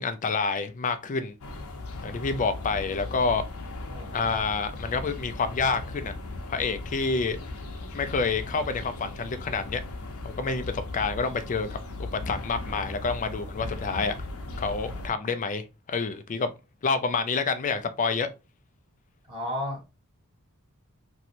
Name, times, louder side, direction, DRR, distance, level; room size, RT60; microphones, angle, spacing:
voice 1, 0.0-1.4 2.0-3.4 4.1-6.1 6.5-7.4 7.9-9.8 10.2-14.2 14.6-16.5 16.8-18.3, left 4 dB, 35° left, 0.4 m, -28 dB
sound 1, 1.4-15.1, left 2 dB, 70° left, 0.7 m, -37 dB
voice 2, 3.9-4.4 19.3-19.8, left 1 dB, 25° right, 1.4 m, -34 dB
3.1 x 2.6 x 2.9 m
head